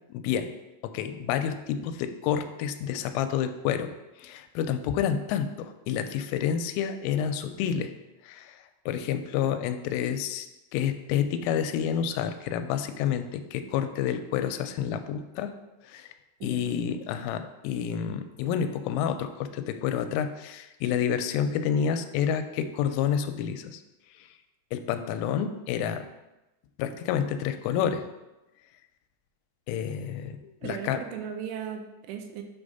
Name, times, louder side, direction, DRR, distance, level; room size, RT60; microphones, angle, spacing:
voice 1, 0.1-0.5 0.8-3.9 4.2-7.9 8.3-8.6 8.9-10.5 10.7-15.5 15.9-16.1 16.4-23.8 24.7-26.1 26.8-28.0 29.7-31.0, left 8 dB, 85° left, 8 dB, 3.1 m, -29 dB
voice 2, 16.4-16.8 30.6-32.4, right 8 dB, 85° right, 5 dB, 3.0 m, -37 dB
8.0 x 3.5 x 5.3 m, 1.0 s
omnidirectional pair, 5.7 m